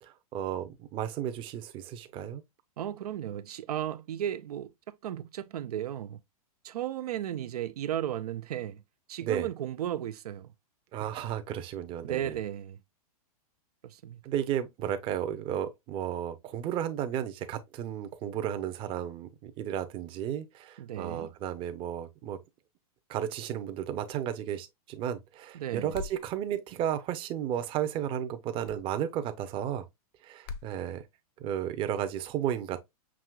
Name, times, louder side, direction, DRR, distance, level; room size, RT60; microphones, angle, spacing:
voice 1, 0.0-2.4 9.2-9.5 10.9-12.4 14.2-22.4 23.1-29.8 30.2-31.0 31.4-32.8, right 10 dB, 25° right, 0.6 m, -33 dB
voice 2, 2.8-4.7 5.0-6.2 6.6-8.8 9.1-10.5 12.0-12.8 13.8-14.2 20.8-21.3 25.5-26.0, right 11 dB, 80° right, 0.5 m, -35 dB
sound 1, 25.9-26.3 28.6-28.8 30.4-30.7, left 4 dB, 45° left, 0.7 m, -40 dB
6.1 x 2.8 x 2.3 m
hypercardioid pair, 140°, 19 cm